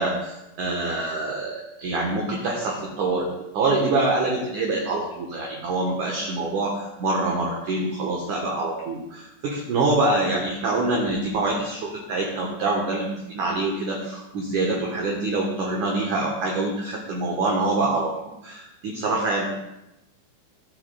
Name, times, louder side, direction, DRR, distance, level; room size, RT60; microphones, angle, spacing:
voice 1, 0.0-18.1 18.4-19.4, right 2 dB, 85° right, -1 dB, 1.7 m, -25 dB
17.5 x 7.6 x 2.3 m, 0.93 s
omnidirectional pair, 5.4 m